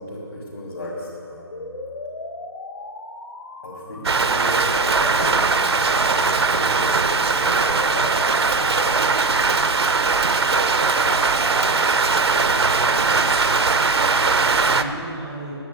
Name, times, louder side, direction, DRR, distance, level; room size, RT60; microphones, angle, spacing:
voice 1, 0.0-1.7 3.6-9.8, left 1 dB, 60° left, -7 dB, 3.0 m, -36 dB
sound 1, 1.5-13.5, left 2 dB, 85° left, 1.6 m, -37 dB
Rain, 4.0-14.8, right 4 dB, 75° right, 0.7 m, -20 dB
voice 2, 12.1-13.4 14.2-15.5, right 1 dB, ahead, -4 dB, 0.7 m, -35 dB
10.0 x 9.4 x 9.2 m, 2.8 s
hypercardioid pair, 180°, 14 cm